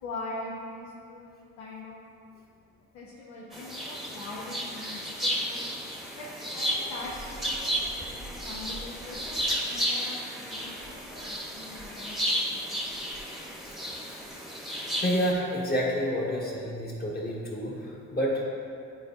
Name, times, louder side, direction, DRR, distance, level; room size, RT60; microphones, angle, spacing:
voice 1, 0.0-2.0 2.9-5.7 6.1-10.2 10.5-12.8, left 2 dB, 90° left, -5 dB, 1.0 m, -42 dB
sound 1, 3.5-15.3, equal, ahead, 1.0 m, -33 dB
voice 2, 15.0-18.4, equal, 30° left, -3 dB, 1.4 m, -29 dB
9.6 x 4.2 x 2.6 m, 2.5 s
cardioid pair, 90°, 30 cm